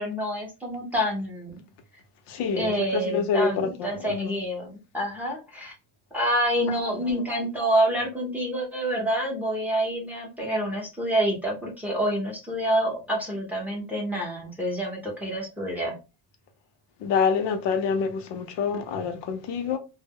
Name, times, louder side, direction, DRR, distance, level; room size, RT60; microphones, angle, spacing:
voice 1, 0.0-1.7 2.6-5.7 6.1-16.0, equal, 5° right, 0.6 m, -27 dB
voice 2, 2.3-4.4 6.7-6.8 17.0-19.8, left 6 dB, 80° left, 0.7 m, -27 dB
2.1 x 2.0 x 3.4 m
cardioid pair, 170°, 42 cm